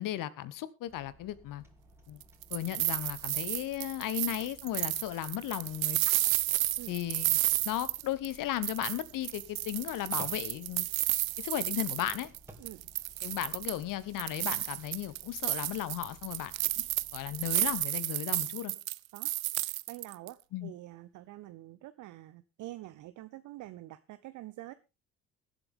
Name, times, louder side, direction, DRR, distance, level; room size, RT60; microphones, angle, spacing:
voice 1, 0.0-1.6 2.1-2.2 2.5-6.2 6.9-7.4 7.6-10.9 11.4-12.3 13.2-16.8 17.1-18.7 20.5-20.7, left 13 dB, 50° left, 1.2 m, -35 dB
sound 1, 0.9-17.9, right 1 dB, 5° right, 3.1 m, -57 dB
sound 2, 2.2-8.4 8.6-12.4 12.7-13.8 14.2-20.3, right 17 dB, 75° right, 0.6 m, -32 dB
voice 2, 19.9-24.7, right 16 dB, 45° right, 0.8 m, -46 dB
22.5 x 7.9 x 3.6 m
figure-of-eight pair, 50°, 42 cm